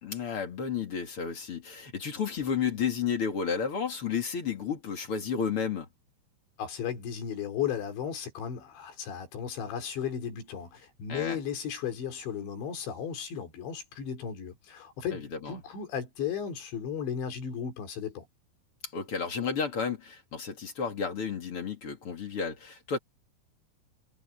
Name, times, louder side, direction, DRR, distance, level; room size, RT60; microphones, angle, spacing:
voice 1, 0.0-5.9 11.1-11.4 15.1-15.6 18.9-23.0, left 6 dB, 40° left, 2.5 m, -32 dB
voice 2, 6.6-18.3, left 8 dB, 80° left, 6.0 m, -35 dB
omnidirectional pair, 5.1 m